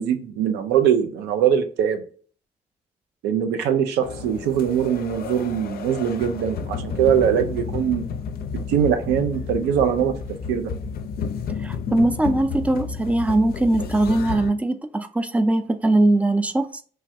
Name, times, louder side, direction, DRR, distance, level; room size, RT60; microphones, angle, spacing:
voice 1, 0.0-2.0 3.2-8.0 8.7-10.1 10.5-10.7, right 8 dB, 85° right, 0.4 m, -22 dB
sound 1, 4.0-14.5, left 5 dB, 60° left, 0.4 m, -31 dB
voice 2, 11.6-16.8, right 1 dB, 10° right, 0.4 m, -21 dB
3.3 x 2.2 x 2.7 m
hypercardioid pair, 45°, 17 cm